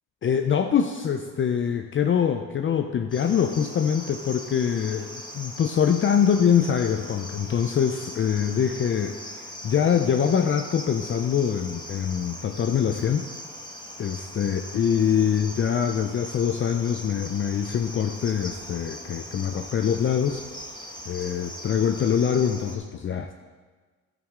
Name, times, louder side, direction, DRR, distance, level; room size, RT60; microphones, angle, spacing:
voice 1, 0.2-13.2 14.0-20.4 21.1-23.3, left 8 dB, 40° left, 7 dB, 0.6 m, -24 dB
Cricket, 3.1-22.8, left 1 dB, 15° left, 1.6 m, -40 dB
11.0 x 8.9 x 3.7 m, 1.4 s
cardioid pair, 90°, 30 cm